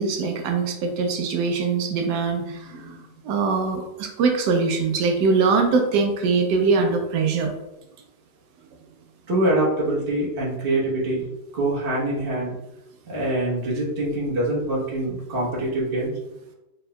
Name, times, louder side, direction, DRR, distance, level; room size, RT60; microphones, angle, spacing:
voice 1, 0.0-7.5, right 4 dB, 85° right, 3 dB, 1.2 m, -22 dB
voice 2, 9.3-11.3 11.5-12.5 13.1-16.1, right 1 dB, 35° right, -5 dB, 1.2 m, -24 dB
4.3 x 3.7 x 2.2 m, 0.95 s
omnidirectional pair, 1.8 m